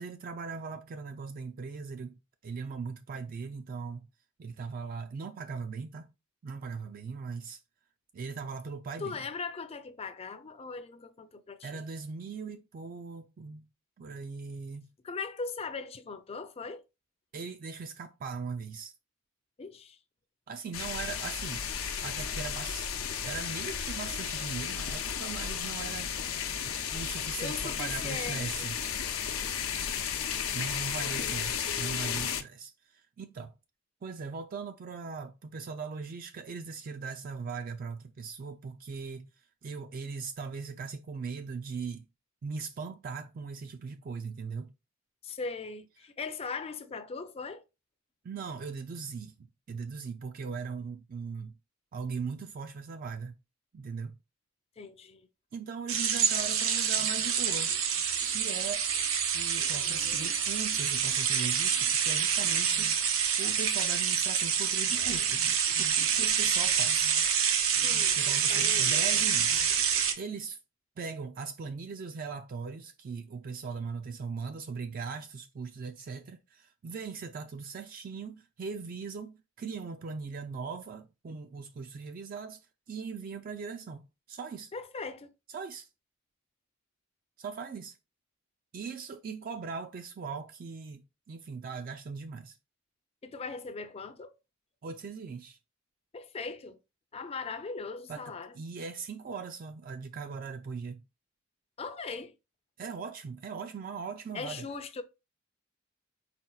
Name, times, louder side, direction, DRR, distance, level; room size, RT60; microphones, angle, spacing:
voice 1, 0.0-2.1 2.4-4.1 4.4-6.1 6.4-7.6 8.1-9.2 11.6-13.7 14.0-14.9 17.3-18.9 20.5-21.6 22.0-22.9 23.2-26.1 26.9-28.8 30.5-33.5 34.0-39.3 39.6-42.1 42.4-44.7 48.2-51.5 51.9-53.4 53.7-54.2 55.5-57.8 58.2-58.9 59.3-67.1 68.0-70.6 71.0-84.0 84.3-84.7 85.5-85.9 87.4-88.0 88.7-91.0 91.3-92.6 94.8-95.6 98.1-98.2 98.5-101.0 102.8-104.7, right 5 dB, 45° right, 0.4 m, -39 dB
voice 2, 9.0-11.7 15.0-16.8 19.6-20.0 27.4-28.7 31.0-31.4 31.7-32.3 45.2-47.6 54.8-55.3 67.8-68.2 68.5-68.9 84.7-85.3 93.2-94.3 96.1-96.8 97.1-98.5 101.8-102.3 104.3-105.0, left 4 dB, 30° left, 0.4 m, -39 dB
sound 1, 20.7-32.4, left 8 dB, 90° left, 0.6 m, -34 dB
sound 2, 55.9-70.1, right 7 dB, 90° right, 0.8 m, -27 dB
4.3 x 4.3 x 2.3 m
head